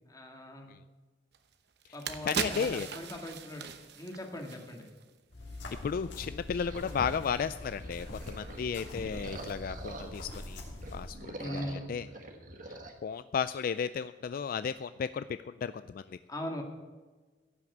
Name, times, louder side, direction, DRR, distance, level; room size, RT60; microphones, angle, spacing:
voice 1, 0.1-0.8 1.9-5.0 11.4-11.9 16.3-16.6, left 1 dB, 20° left, 2 dB, 1.9 m, -40 dB
sound 1, 1.3-1.4 1.8-5.1 5.4-5.6, right 6 dB, 65° right, 0.9 m, -38 dB
voice 2, 2.2-2.9 5.8-10.6 10.9-12.1 12.7-16.2, left 6 dB, 55° left, 13 dB, 0.3 m, -34 dB
sound 2, 5.3-11.1, left 1 dB, 80° left, 3.0 m, -43 dB
sound 3, 6.5-10.4 10.7-12.9, right 2 dB, 50° right, 1.5 m, -46 dB
16.0 x 6.0 x 7.9 m, 1.3 s
head